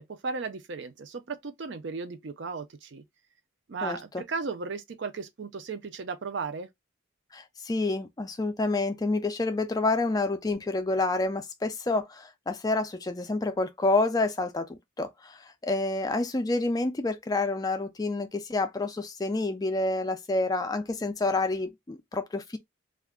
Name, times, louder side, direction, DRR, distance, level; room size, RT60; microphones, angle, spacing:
voice 1, 0.0-3.0 3.7-6.7, right 4 dB, 60° right, 0.5 m, -35 dB
voice 2, 3.8-4.2 7.3-22.6, left 2 dB, 20° left, 0.3 m, -28 dB
2.4 x 2.2 x 3.5 m
head